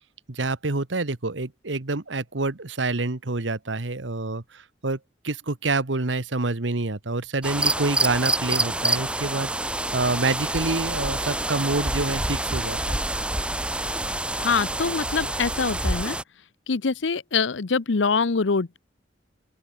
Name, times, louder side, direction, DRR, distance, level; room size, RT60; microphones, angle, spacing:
voice 1, 0.3-5.0 5.2-9.5 9.9-13.0, right 3 dB, 85° right, 1.4 m, -27 dB
sound 1, 7.4-16.2, right 1 dB, 5° right, 0.8 m, -27 dB
voice 2, 14.4-16.2 16.7-18.8, left 4 dB, 90° left, 0.8 m, -24 dB
open air
head